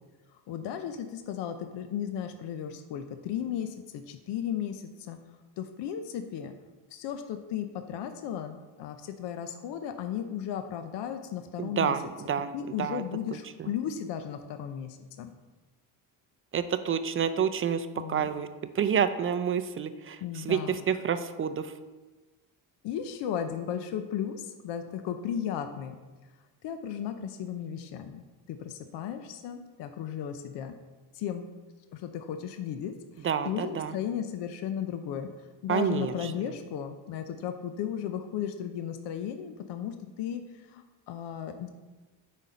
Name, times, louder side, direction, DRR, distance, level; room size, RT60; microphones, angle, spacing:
voice 1, 0.5-5.2 5.6-6.5 6.9-12.0 12.5-15.3 18.0-18.3 20.2-20.8 22.8-26.0 26.6-30.7 31.1-31.5 31.9-35.3 35.6-41.7, left 9 dB, 65° left, 7 dB, 0.7 m, -35 dB
voice 2, 11.6-12.0 12.3-13.0 13.6-13.7 16.5-18.5 18.7-21.7 33.2-33.9 35.7-36.3, right 7 dB, 30° right, 10 dB, 0.4 m, -29 dB
8.8 x 4.2 x 5.1 m, 1.2 s
cardioid pair, 110°, 45 cm